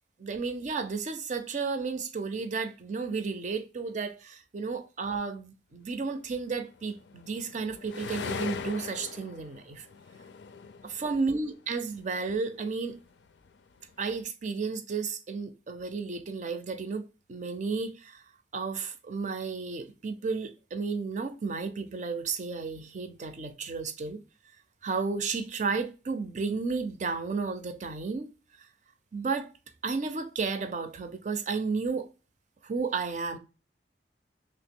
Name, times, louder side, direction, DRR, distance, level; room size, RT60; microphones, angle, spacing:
voice 1, 0.2-9.9 10.8-12.9 14.0-18.2 18.5-24.2 24.8-28.3 29.1-29.5 29.8-32.1 32.6-33.4, right 4 dB, 40° right, 0.5 m, -33 dB
sound 1, 6.4-12.1 12.5-14.2, left 5 dB, 70° left, 0.4 m, -41 dB
3.1 x 2.9 x 3.6 m
head